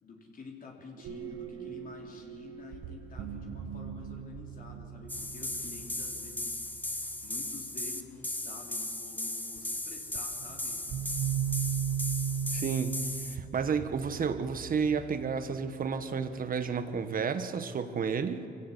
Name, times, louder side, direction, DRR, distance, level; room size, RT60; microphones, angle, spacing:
voice 1, 0.0-10.8, left 3 dB, 45° left, -1 dB, 4.1 m, -49 dB
sound 1, 1.0-7.9 9.6-9.7 10.1-17.2, right 9 dB, 75° right, 1.4 m, -38 dB
sound 2, 5.1-13.4, left 2 dB, 10° left, 1.4 m, -37 dB
voice 2, 12.5-18.5, right 6 dB, 45° right, 9 dB, 1.5 m, -31 dB
25.0 x 16.0 x 8.6 m, 2.6 s
cardioid pair, 90°, 20 cm